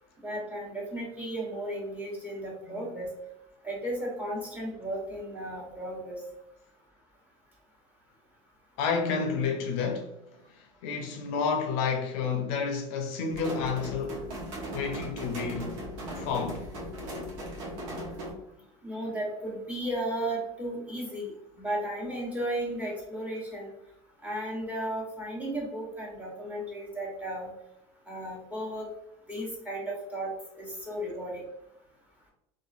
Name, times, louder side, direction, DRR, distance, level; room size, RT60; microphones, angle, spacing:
voice 1, 0.2-3.1 3.6-6.2 18.8-23.7 24.2-27.5 28.1-28.9 29.3-31.4, right 1 dB, 10° right, 1.2 m, -34 dB
voice 2, 8.8-10.1 10.8-14.2 14.7-15.8 16.2-16.7, left 5 dB, 70° left, 0.5 m, -30 dB
sound 1, 13.3-18.3, equal, 75° right, 0.9 m, -38 dB
2.8 x 2.5 x 2.5 m
supercardioid pair, 100°, 16 cm